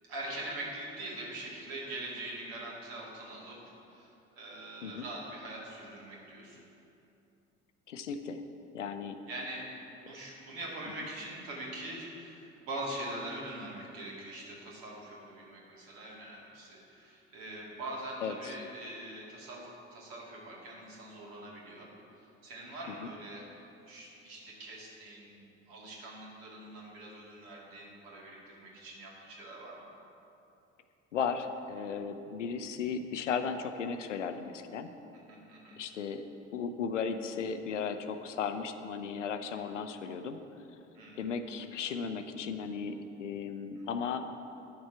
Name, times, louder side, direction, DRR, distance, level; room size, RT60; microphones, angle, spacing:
voice 1, 0.1-6.6 9.3-21.9 22.2-23.5 23.9-29.9 35.3-35.8 39.5-39.6 40.9-41.3 43.8-43.9, right 1 dB, 60° right, -4 dB, 2.2 m, -43 dB
voice 2, 7.9-8.4 8.7-9.2 18.2-18.5 22.9-23.1 31.1-34.9 35.8-36.2 36.5-40.4 41.2-44.3, left 6 dB, 80° left, 9 dB, 0.5 m, -35 dB
11.0 x 6.7 x 4.5 m, 2.8 s
figure-of-eight pair, 50°, 36 cm